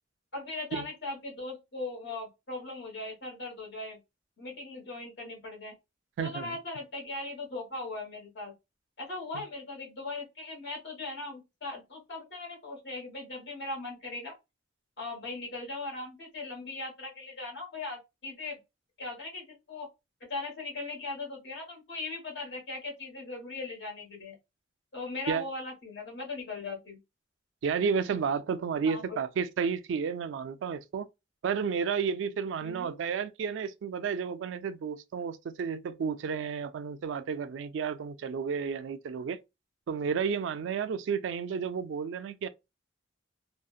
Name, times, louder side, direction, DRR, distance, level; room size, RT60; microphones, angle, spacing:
voice 1, 0.3-4.0 4.4-5.7 6.2-8.5 9.0-14.3 15.0-18.6 19.0-19.9 20.3-24.4 24.9-27.0 28.8-29.2 32.6-32.9, left 2 dB, 60° left, 1.2 m, -39 dB
voice 2, 6.2-6.6 9.3-9.4 25.3-25.4 27.6-31.1 31.4-39.4 39.9-42.5, right 6 dB, 70° right, 0.3 m, -32 dB
2.6 x 2.1 x 2.3 m
head